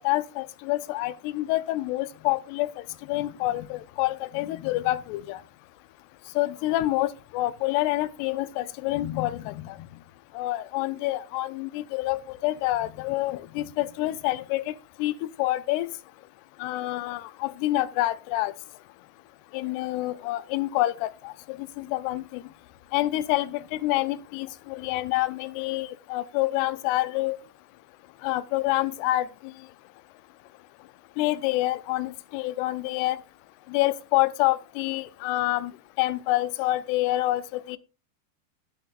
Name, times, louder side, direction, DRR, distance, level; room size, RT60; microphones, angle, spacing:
voice 1, 0.0-2.7 3.1-5.4 6.4-9.8 10.4-14.6 15.0-15.9 16.6-18.5 19.5-21.3 21.8-22.4 22.9-27.4 28.2-29.3 31.2-33.2 33.7-35.7 36.0-37.8, left 17 dB, 80° left, 2.6 m, -27 dB
12.0 x 9.1 x 2.5 m
omnidirectional pair, 4.9 m